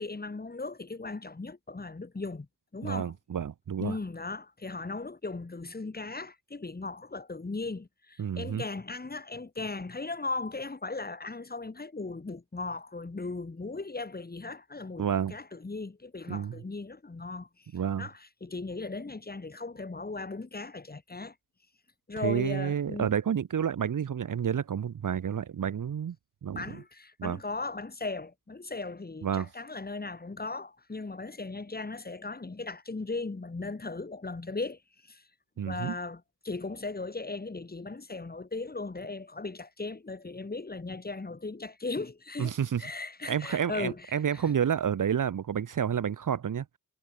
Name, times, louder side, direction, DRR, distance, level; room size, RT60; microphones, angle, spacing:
voice 1, 0.0-2.5 2.7-3.1 3.8-17.7 18.0-21.3 22.1-23.1 26.5-35.2 35.6-44.5, left 3 dB, 25° left, 5.5 m, -37 dB
voice 2, 2.8-4.0 8.2-8.6 15.0-15.3 16.3-16.5 17.7-18.1 22.2-26.2 26.4-26.7 27.2-27.4 29.2-29.5 35.6-35.9 42.4-42.8 43.2-46.7, right 8 dB, 50° right, 1.6 m, -30 dB
cardioid pair, 95°, 39 cm